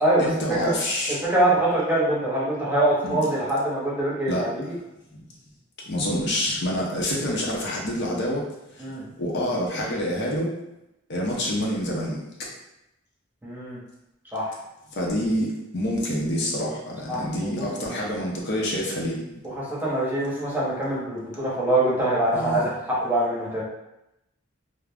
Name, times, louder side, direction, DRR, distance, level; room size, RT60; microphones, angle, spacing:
voice 1, 0.2-1.2 3.0-3.2 4.3-4.5 5.9-8.4 9.2-10.5 11.1-12.2 15.0-19.2 22.3-22.7, equal, 60° left, -3 dB, 0.6 m, -27 dB
voice 2, 1.1-4.6 8.8-9.0 13.4-13.8 14.3-14.5 17.1-17.9 19.6-23.6, right 1 dB, 10° right, -7 dB, 0.7 m, -24 dB
2.4 x 2.1 x 3.4 m, 0.89 s
head